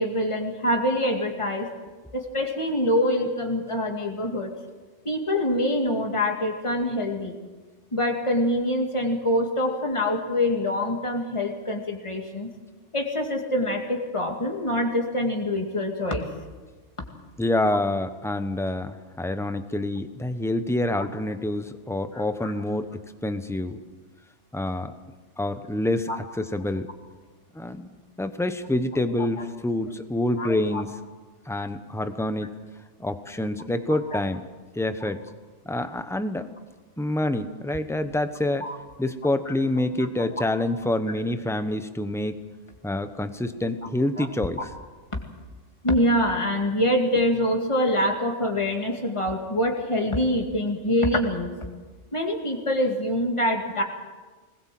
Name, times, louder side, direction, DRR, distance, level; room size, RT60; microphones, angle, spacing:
voice 1, 0.0-1.7 2.1-4.5 5.0-7.3 7.9-12.5 12.9-16.2 20.9-21.0 22.1-22.5 26.1-26.2 29.4-29.5 30.4-30.8 35.0-35.1 38.6-38.8 44.2-44.3 44.6-44.7 45.8-51.5 52.1-53.8, left 1 dB, 25° left, 2 dB, 2.4 m, -25 dB
voice 2, 17.4-22.9 23.2-23.8 24.5-24.9 25.4-26.9 27.5-27.9 28.2-30.9 31.5-32.5 33.0-34.5 34.7-35.2 35.6-36.5 37.0-38.7 39.0-42.4 42.8-44.6, left 1 dB, 5° left, 9 dB, 1.0 m, -27 dB
21.5 x 20.0 x 7.7 m, 1.3 s
omnidirectional pair, 1.2 m